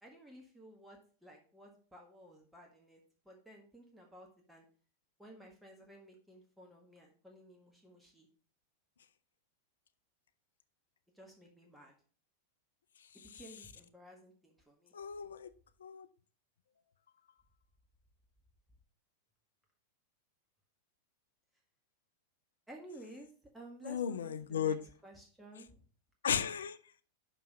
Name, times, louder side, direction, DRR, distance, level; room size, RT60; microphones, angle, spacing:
voice 1, 0.0-4.7 5.2-8.3 11.1-11.9 13.3-14.9 22.7-24.8 25.0-25.9, right 1 dB, 5° right, 1.7 m, -55 dB
voice 2, 14.9-15.5 15.8-16.1 23.8-24.8 26.2-26.8, left 8 dB, 65° left, 0.5 m, -35 dB
5.9 x 5.5 x 5.3 m
figure-of-eight pair, 90°, 0 cm